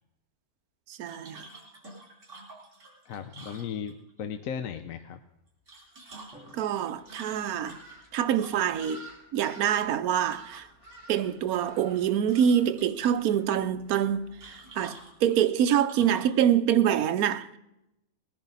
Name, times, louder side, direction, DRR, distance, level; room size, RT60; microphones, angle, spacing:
voice 1, 0.9-1.4 6.5-7.8 8.1-9.1 9.3-10.7 11.1-17.6, right 9 dB, 80° right, 1.2 m, -25 dB
sound 1, 1.1-4.2 5.5-8.9 10.2-11.0 11.3-12.0 12.3-13.1 14.4-16.4, right 2 dB, 55° right, 4.2 m, -48 dB
voice 2, 3.0-5.2, left 7 dB, 70° left, 1.0 m, -36 dB
Drum, 6.3-8.4, equal, 5° right, 3.7 m, -57 dB
sound 2, 6.4-15.5, right 1 dB, 50° left, 3.5 m, -53 dB
19.5 x 10.5 x 4.0 m
omnidirectional pair, 1.6 m